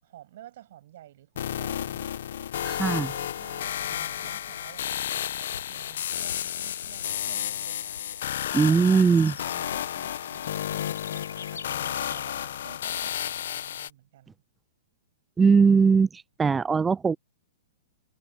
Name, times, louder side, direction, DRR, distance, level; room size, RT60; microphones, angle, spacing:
voice 1, 0.0-2.1 3.1-8.1 8.5-9.1 9.4-14.4, right 13 dB, 60° right, 7.5 m, -51 dB
sound 1, 1.4-13.9, left 10 dB, 70° left, 1.4 m, -32 dB
voice 2, 2.6-3.1 8.5-9.3 15.4-17.2, right 5 dB, 15° right, 0.4 m, -20 dB
Bird / Insect, 4.8-13.4, left 6 dB, 90° left, 1.0 m, -48 dB
hypercardioid pair, 125°, 0 cm